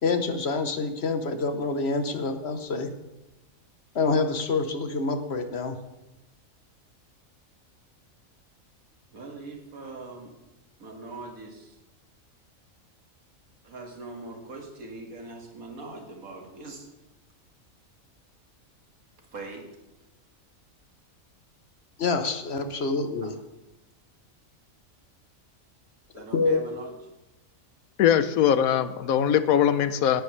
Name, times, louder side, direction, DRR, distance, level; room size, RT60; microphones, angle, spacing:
voice 1, 0.0-2.9 3.9-5.8 22.0-23.3 26.1-26.6, left 3 dB, 50° left, 8 dB, 1.1 m, -27 dB
voice 2, 9.1-10.3 10.8-11.8 13.6-16.9 19.3-19.7 23.2-23.3 26.1-26.9, right 3 dB, 85° right, 2 dB, 2.4 m, -41 dB
voice 3, 28.0-30.2, left 9 dB, 85° left, 13 dB, 1.1 m, -21 dB
17.5 x 10.5 x 3.3 m, 0.99 s
omnidirectional pair, 1.4 m